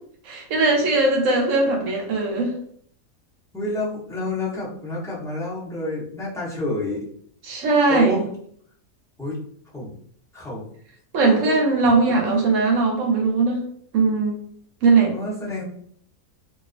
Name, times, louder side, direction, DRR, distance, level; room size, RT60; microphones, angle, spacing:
voice 1, 0.2-2.5 7.4-8.3 11.1-13.6 13.9-14.4 14.8-15.1, right 3 dB, 70° right, 1 dB, 0.9 m, -19 dB
voice 2, 3.5-7.1 7.9-8.2 9.2-9.4 9.7-9.9 10.3-10.6 11.2-11.6 12.2-12.4 15.1-15.6, left 2 dB, 5° left, -9 dB, 0.5 m, -29 dB
2.5 x 2.4 x 2.4 m, 0.62 s
omnidirectional pair, 1.5 m